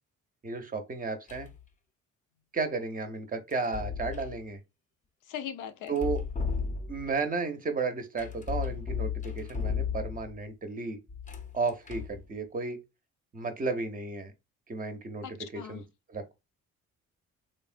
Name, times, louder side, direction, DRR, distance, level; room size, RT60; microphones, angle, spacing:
voice 1, 0.4-1.5 2.5-4.6 5.9-6.2 6.9-11.0 11.5-12.8 13.3-14.3 14.7-15.3 15.5-15.8 16.1-16.3, right 4 dB, 30° right, 0.5 m, -33 dB
sound 1, 1.3-1.6 3.5-4.4 5.9-7.2 8.2-10.4 11.1-12.2, left 6 dB, 25° left, 0.5 m, -34 dB
voice 2, 5.3-6.0 15.2-15.8, left 9 dB, 90° left, 0.5 m, -40 dB
3.1 x 2.1 x 2.4 m
cardioid pair, 90°, 30 cm